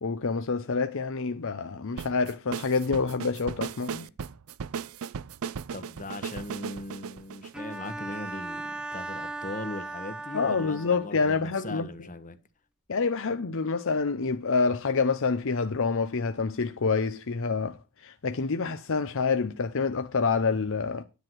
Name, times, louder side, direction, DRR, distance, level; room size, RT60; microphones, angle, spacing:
voice 1, 0.0-4.1 10.3-11.9 12.9-21.0, left 4 dB, 65° left, 0.7 m, -27 dB
sound 1, 2.0-8.3, right 6 dB, 70° right, 0.5 m, -37 dB
voice 2, 5.7-12.4, left 2 dB, 35° left, 1.3 m, -39 dB
Bowed string instrument, 7.5-11.3, right 2 dB, 5° right, 0.8 m, -38 dB
10.5 x 4.5 x 7.8 m
head